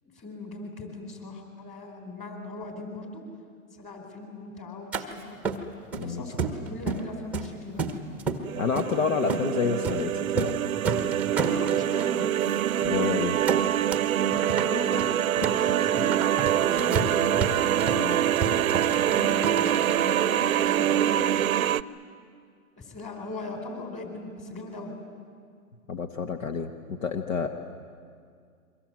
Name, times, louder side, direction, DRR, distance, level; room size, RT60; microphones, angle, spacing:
voice 1, 0.0-3.2 3.8-5.4 6.0-7.9 11.4-12.3 14.2-16.1 16.7-17.1 19.0-21.2 22.8-24.9, left 3 dB, 15° left, 4 dB, 4.3 m, -39 dB
sound 1, 4.9-5.0 5.4-6.0 6.4-7.1 7.3-8.4 8.7-8.9 9.3-9.5 9.8-10.0 10.3-10.6 10.8-12.1 12.5-12.6 12.8-13.1 13.5-14.1 14.3-20.0, right 4 dB, 5° right, 1.1 m, -31 dB
sound 2, 8.4-21.8, right 11 dB, 65° right, 0.8 m, -25 dB
voice 2, 8.6-10.6 12.8-13.4 17.9-18.2 25.9-27.5, left 6 dB, 60° left, 6 dB, 1.7 m, -29 dB
28.0 x 24.0 x 7.8 m, 2.2 s
hypercardioid pair, 150°, 44 cm